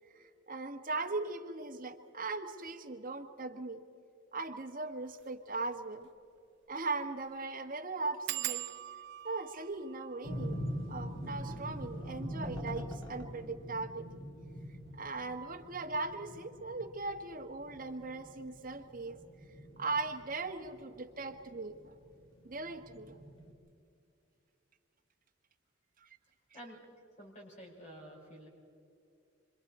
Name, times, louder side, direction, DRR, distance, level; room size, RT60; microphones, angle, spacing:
voice 1, 0.1-3.8 4.3-6.1 6.7-8.7 9.2-10.6 10.9-14.3 14.9-19.2 19.8-22.0 22.4-23.2 26.0-26.1, right 3 dB, 45° right, 4 dB, 1.5 m, -39 dB
sound 1, 5.1-5.3 5.7-5.8 6.0-6.1 6.7-6.9 7.2-7.3 8.3-13.5 14.2-14.7 15.1-15.4 15.7-15.8, right 14 dB, 60° right, 0.4 m, -44 dB
sound 2, 10.2-23.5, equal, 90° left, 4.2 m, -43 dB
voice 2, 27.2-28.5, equal, 40° left, -2 dB, 5.9 m, -50 dB
26.0 x 26.0 x 4.3 m, 2.5 s
head